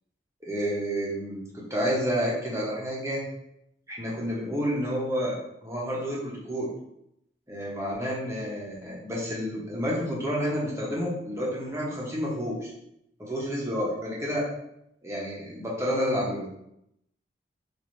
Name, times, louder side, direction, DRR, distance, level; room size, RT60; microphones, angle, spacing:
voice 1, 0.4-3.2 3.9-6.7 7.5-12.7 13.2-14.4 15.0-16.5, equal, 15° right, -5 dB, 0.9 m, -30 dB
3.9 x 2.7 x 3.1 m, 0.79 s
head